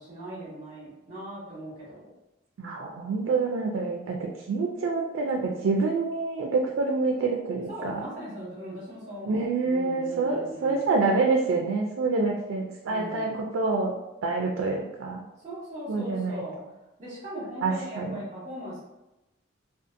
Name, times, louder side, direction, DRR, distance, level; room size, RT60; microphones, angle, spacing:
voice 1, 0.0-2.1 7.7-10.9 12.8-13.4 15.4-16.6 17.0-18.8, equal, 35° right, -9 dB, 0.7 m, -39 dB
voice 2, 2.6-7.9 9.3-14.0 14.2-15.2 15.9-16.4 17.6-18.2, right 3 dB, 90° right, 0 dB, 0.3 m, -27 dB
2.5 x 2.4 x 2.5 m, 0.98 s
head